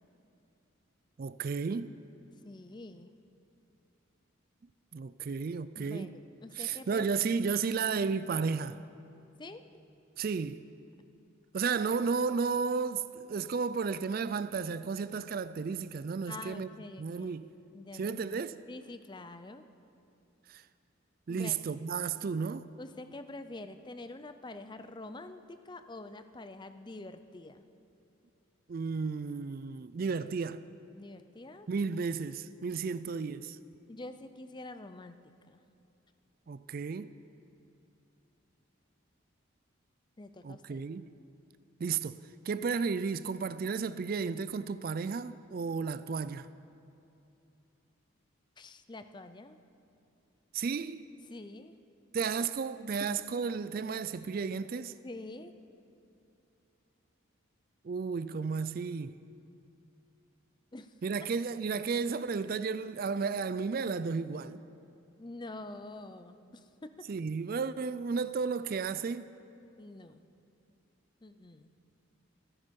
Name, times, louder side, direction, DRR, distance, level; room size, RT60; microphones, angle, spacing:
voice 1, 1.2-1.9 4.9-6.1 6.6-8.8 10.2-10.6 11.5-16.7 17.0-17.4 17.9-18.6 20.5-20.6 21.3-22.7 28.7-30.7 31.7-33.6 36.5-37.1 40.4-41.1 41.8-42.2 42.4-46.5 50.5-51.0 52.1-54.9 57.8-59.2 61.0-64.6 67.1-69.3, right 5 dB, 45° right, 0.3 m, -33 dB
voice 2, 2.4-3.1 5.8-7.4 9.4-9.6 16.3-17.3 17.7-18.4 18.7-19.6 21.3-21.6 22.8-27.6 30.9-31.7 33.9-35.2 35.5-35.6 40.2-40.8 48.6-49.6 51.3-51.8 53.0-53.4 54.8-55.6 60.7-60.9 65.2-67.1 69.8-70.2 71.2-71.7, left 2 dB, 20° left, 0.5 m, -46 dB
26.5 x 9.7 x 5.3 m
head